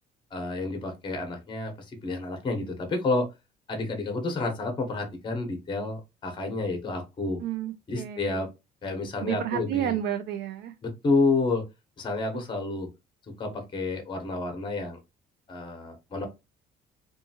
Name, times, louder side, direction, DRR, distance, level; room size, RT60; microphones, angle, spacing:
voice 1, 0.3-3.3 3.7-7.4 7.9-8.5 8.8-9.9 10.8-11.6 12.0-12.9 13.3-15.0 15.5-16.2, left 3 dB, 30° left, 0.8 m, -29 dB
voice 2, 7.4-8.4 9.2-10.7, right 10 dB, 70° right, 0.4 m, -31 dB
2.7 x 2.3 x 2.7 m
cardioid pair, 110°, 17 cm